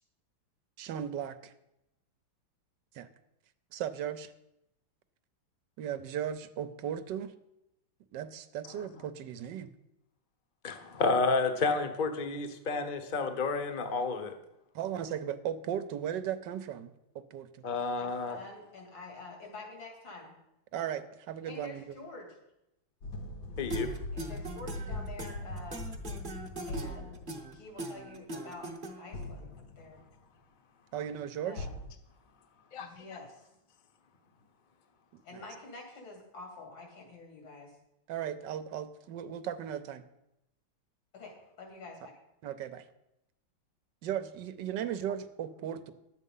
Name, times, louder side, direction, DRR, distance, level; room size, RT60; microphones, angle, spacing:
voice 1, 0.8-1.5 2.9-3.1 3.7-4.3 5.8-7.3 8.1-9.7 14.7-17.6 20.7-21.9 30.9-31.7 35.3-35.4 38.1-40.0 42.4-42.8 44.0-45.9, right 9 dB, 70° right, 12 dB, 1.2 m, -36 dB
voice 2, 10.6-14.3 17.6-18.4 23.6-23.9 32.7-32.9, left 3 dB, 35° left, 6 dB, 0.8 m, -30 dB
voice 3, 18.0-20.3 21.5-22.4 24.1-25.9 26.7-28.7 29.0-30.0 31.4-31.7 32.8-33.4 35.2-37.7 41.1-42.2, left 3 dB, 80° left, 1 dB, 3.6 m, -48 dB
sound 1, 23.0-27.7 29.1-30.0 31.6-31.9, left 1 dB, 60° left, 1.4 m, -40 dB
sound 2, 23.7-29.2, right 2 dB, 35° right, 0.9 m, -41 dB
11.0 x 8.2 x 5.5 m, 0.87 s
omnidirectional pair, 2.2 m